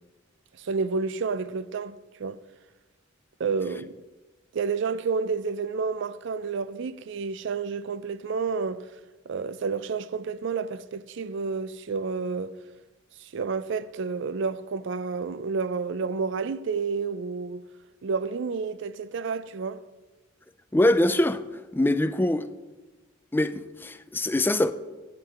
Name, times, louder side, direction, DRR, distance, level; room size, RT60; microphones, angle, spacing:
voice 1, 0.6-2.4 3.4-3.9 4.5-8.9 9.3-12.5 13.3-17.6 18.0-19.8, right 5 dB, 65° right, 0.4 m, -30 dB
voice 2, 20.7-21.4 21.7-22.5 23.3-24.7, left 1 dB, 10° left, 0.3 m, -23 dB
10.5 x 9.0 x 3.5 m
head